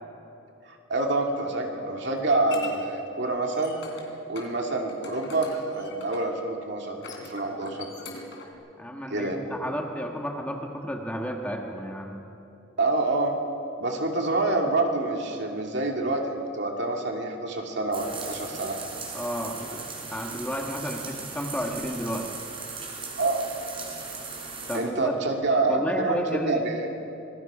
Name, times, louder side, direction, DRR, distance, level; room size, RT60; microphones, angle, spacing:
voice 1, 0.7-3.8 4.3-7.9 9.1-9.4 12.8-13.4 13.8-18.8 23.2-23.4 24.7-26.9, right 2 dB, 55° right, 1 dB, 2.5 m, -27 dB
sound 1, 1.8-2.7 3.3-4.1 4.4-4.5 4.9-6.3 6.9-8.5, left 4 dB, 60° left, 3.5 m, -42 dB
voice 2, 8.8-12.2 19.1-19.8 20.1-22.3 24.7-25.1 25.7-26.6, equal, 5° left, 1 dB, 1.5 m, -32 dB
sound 2, 17.9-24.8, right 4 dB, 25° right, 3.7 m, -38 dB
26.0 x 21.5 x 5.0 m, 3.0 s
head